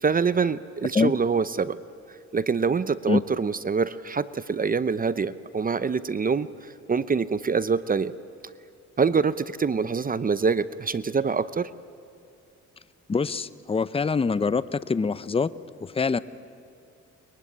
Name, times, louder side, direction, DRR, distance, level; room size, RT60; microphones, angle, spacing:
voice 1, 0.0-1.8 2.3-8.1 9.0-11.7, right 5 dB, 30° right, 15 dB, 0.7 m, -25 dB
voice 2, 13.1-15.5 15.8-16.2, left 4 dB, 20° left, 16 dB, 0.7 m, -24 dB
23.5 x 22.0 x 9.7 m, 2.5 s
cardioid pair, 90°, 30 cm